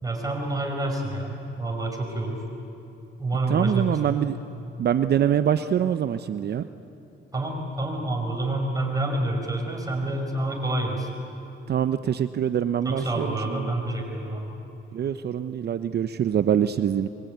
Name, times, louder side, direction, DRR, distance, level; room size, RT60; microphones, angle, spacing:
voice 1, 0.0-2.4 3.2-4.2 7.3-11.1 12.8-14.5, right 2 dB, 20° right, 1 dB, 5.8 m, -28 dB
voice 2, 3.5-4.4 4.8-6.6 11.7-13.7 14.9-17.1, right 9 dB, 55° right, 11 dB, 0.8 m, -24 dB
24.5 x 23.0 x 9.5 m, 2.8 s
cardioid pair, 90°, 20 cm